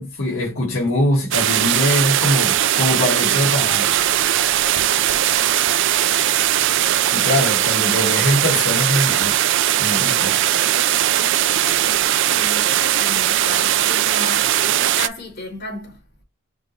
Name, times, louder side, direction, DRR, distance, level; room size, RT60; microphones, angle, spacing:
voice 1, 0.0-3.9 7.1-9.4 9.8-10.4, left 1 dB, 75° left, 1.6 m, -22 dB
sound 1, 1.3-15.1, right 12 dB, 60° right, 0.4 m, -19 dB
voice 2, 12.3-16.0, left 2 dB, 50° left, 2.9 m, -34 dB
5.8 x 2.5 x 3.1 m
head